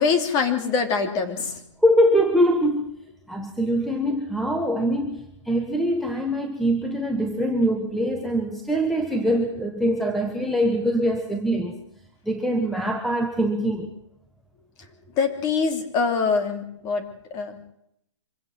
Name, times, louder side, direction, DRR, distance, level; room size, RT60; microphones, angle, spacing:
voice 1, 0.0-1.6 15.2-17.0 17.3-17.6, left 5 dB, 20° left, 6 dB, 3.0 m, -24 dB
voice 2, 1.8-2.9 3.3-11.8 12.2-13.9, equal, ahead, 4 dB, 1.2 m, -23 dB
25.0 x 16.5 x 7.7 m, 0.74 s
hypercardioid pair, 155°, 16 cm